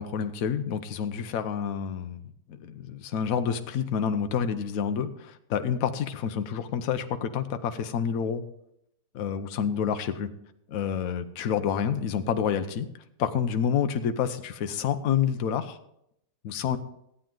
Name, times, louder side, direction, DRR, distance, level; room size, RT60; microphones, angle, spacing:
voice 1, 0.0-2.2 2.5-8.4 9.1-10.3 10.7-12.9 13.2-15.8 16.4-16.8, left 7 dB, 65° left, 8 dB, 1.1 m, -28 dB
15.0 x 8.9 x 3.8 m, 0.77 s
omnidirectional pair, 1.7 m